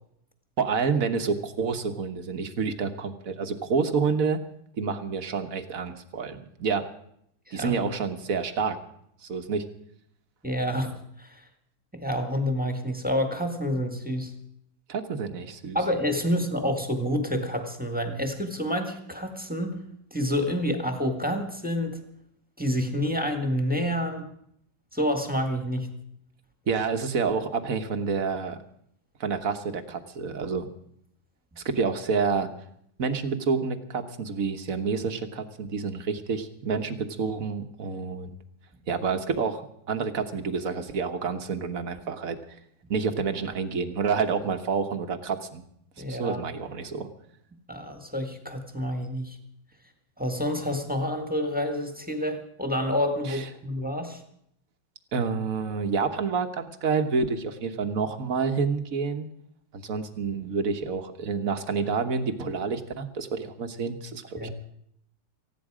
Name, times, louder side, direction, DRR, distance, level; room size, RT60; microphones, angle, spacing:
voice 1, 0.6-4.4 4.8-6.9 7.5-8.8 9.2-9.6 14.9-15.8 26.7-28.6 29.2-30.7 31.6-32.5 33.0-38.3 38.9-42.4 42.9-45.6 46.1-47.1 53.2-53.5 55.1-59.3 59.7-64.5, right 5 dB, 50° right, 8 dB, 1.5 m, -28 dB
voice 2, 10.4-11.4 11.9-14.3 15.7-19.8 20.1-22.0 22.6-24.3 24.9-25.9 46.0-46.4 47.7-49.4 50.2-54.2 64.4-64.5, equal, 5° right, 5 dB, 1.8 m, -28 dB
19.0 x 15.0 x 5.0 m, 0.71 s
omnidirectional pair, 2.1 m